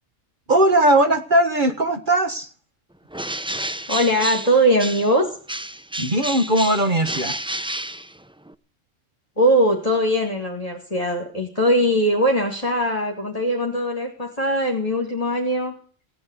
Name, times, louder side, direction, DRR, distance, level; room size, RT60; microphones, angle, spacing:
voice 1, 0.5-2.5 6.0-7.4, right 1 dB, 40° right, 8 dB, 1.5 m, -19 dB
Bird, 3.1-5.2 5.5-8.5, right 1 dB, 10° right, 0.3 m, -30 dB
voice 2, 3.9-5.3 9.4-15.7, equal, 30° left, 0 dB, 2.6 m, -20 dB
17.0 x 9.6 x 8.4 m, 0.42 s
omnidirectional pair, 1.3 m